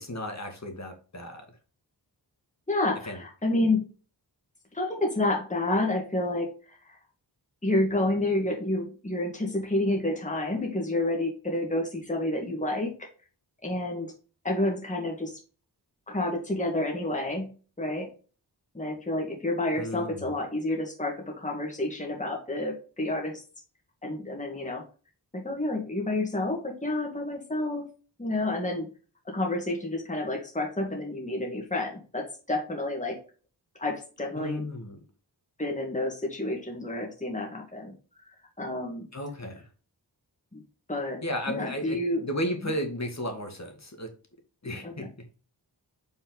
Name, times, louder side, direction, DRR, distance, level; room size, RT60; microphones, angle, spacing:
voice 1, 0.0-1.5 3.1-3.2 19.8-20.3 34.4-35.0 39.1-39.6 41.2-44.1 44.6-45.1, equal, 40° left, 4 dB, 1.9 m, -34 dB
voice 2, 2.7-3.9 4.7-7.0 7.6-12.9 13.6-14.1 14.4-15.4 16.1-17.5 17.8-18.1 18.7-23.4 24.0-24.8 25.3-27.9 28.2-28.9 29.3-33.2 33.8-34.6 35.6-37.9 38.6-39.1 40.5-40.6 40.9-41.2 41.5-42.2 44.8-45.1, left 2 dB, 15° left, 0 dB, 1.9 m, -29 dB
5.4 x 4.5 x 3.9 m, 0.36 s
cardioid pair, 45°, 42 cm